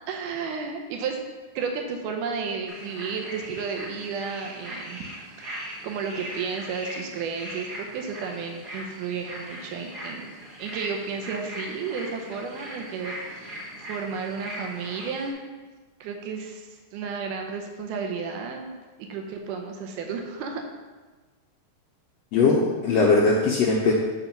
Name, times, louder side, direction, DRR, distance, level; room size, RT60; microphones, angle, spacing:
voice 1, 0.1-1.2 1.6-5.0 5.4-10.3 10.6-13.6 13.9-15.4 16.0-18.8 19.1-20.6, right 5 dB, 85° right, 3 dB, 2.3 m, -32 dB
sound 1, 2.7-15.3, equal, 50° right, 1.2 m, -39 dB
voice 2, 22.3-23.9, left 4 dB, 80° left, -2 dB, 1.5 m, -20 dB
7.9 x 3.5 x 5.8 m, 1.3 s
omnidirectional pair, 3.6 m